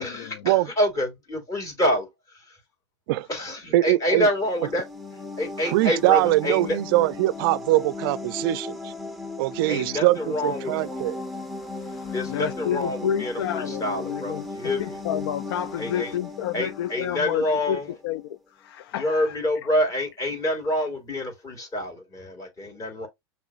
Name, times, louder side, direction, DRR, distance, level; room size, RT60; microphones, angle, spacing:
voice 1, 0.0-2.6 3.3-4.9 5.4-6.8 9.7-10.8 12.1-15.0 15.8-16.2 16.5-17.9 18.9-23.1, left 1 dB, 25° left, 3.0 m, -27 dB
voice 2, 3.7-4.3 5.7-8.9 9.4-11.2, right 17 dB, 60° right, 0.4 m, -22 dB
sound 1, 4.3-17.9, left 3 dB, ahead, 0.8 m, -37 dB
voice 3, 11.8-14.5 14.8-19.4, left 10 dB, 65° left, 0.5 m, -30 dB
6.0 x 3.1 x 2.4 m
hypercardioid pair, 115°, 14 cm